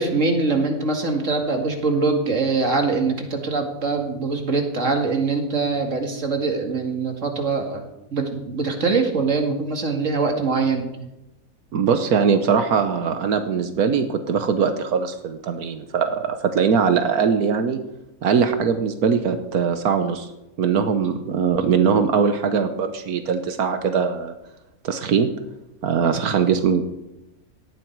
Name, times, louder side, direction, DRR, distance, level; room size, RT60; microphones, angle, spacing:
voice 1, 0.0-7.8 8.1-10.9, right 4 dB, 55° right, 3 dB, 2.5 m, -23 dB
voice 2, 11.7-17.8 18.2-20.3 20.6-24.3 24.8-25.3 25.8-26.9, right 6 dB, 85° right, 8 dB, 1.5 m, -21 dB
18.0 x 13.0 x 4.7 m, 0.92 s
omnidirectional pair, 1.5 m